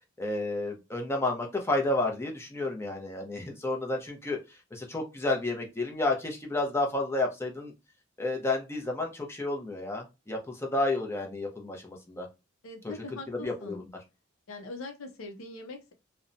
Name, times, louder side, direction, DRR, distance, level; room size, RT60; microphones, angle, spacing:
voice 1, 0.2-7.7 8.2-12.3 12.8-12.9 13.3-13.9, left 2 dB, 15° left, 1 dB, 0.6 m, -31 dB
voice 2, 12.6-13.8 14.5-15.9, left 2 dB, 85° left, 4 dB, 0.6 m, -42 dB
2.8 x 2.1 x 2.5 m, 0.25 s
head